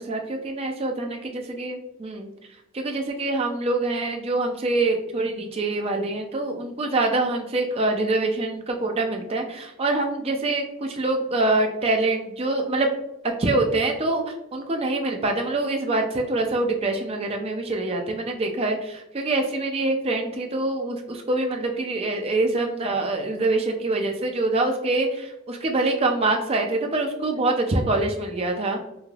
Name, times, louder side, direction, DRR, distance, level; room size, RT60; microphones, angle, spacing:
voice 1, 0.0-2.3 2.7-12.9 13.2-28.8, right 2 dB, 30° right, 3 dB, 0.4 m, -25 dB
3.2 x 2.6 x 2.3 m, 0.88 s
head